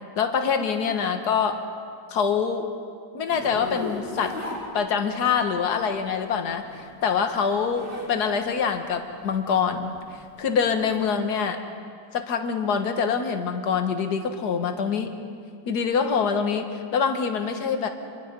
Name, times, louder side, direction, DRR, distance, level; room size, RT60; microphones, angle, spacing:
voice 1, 0.2-1.6 2.1-2.7 3.1-4.4 4.7-11.6 12.1-15.1 15.7-17.9, left 6 dB, 55° left, 6 dB, 1.9 m, -25 dB
Zipper (clothing), 3.3-5.3 6.5-8.1 8.5-10.9, left 2 dB, 5° right, 5.6 m, -37 dB
28.0 x 22.5 x 5.3 m, 2.2 s
omnidirectional pair, 2.2 m